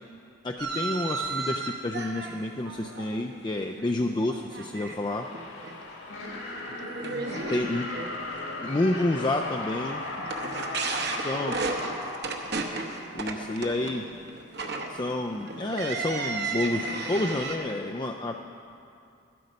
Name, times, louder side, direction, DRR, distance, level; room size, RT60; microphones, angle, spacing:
voice 1, 0.4-5.3 7.5-7.9 8.6-10.0 11.2-11.5 13.1-14.1 14.9-18.4, left 2 dB, 20° left, 2 dB, 0.3 m, -29 dB
sound 1, 0.6-3.9 4.2-5.0 5.3-5.7 6.2-6.3 6.8-17.6, right 3 dB, 50° right, 1.0 m, -34 dB
sound 2, 4.5-13.4, left 2 dB, 65° left, 1.8 m, -37 dB
voice 2, 6.6-7.7 10.4-11.9, left 2 dB, 50° left, 3 dB, 1.1 m, -45 dB
13.0 x 12.0 x 5.2 m, 2.5 s
head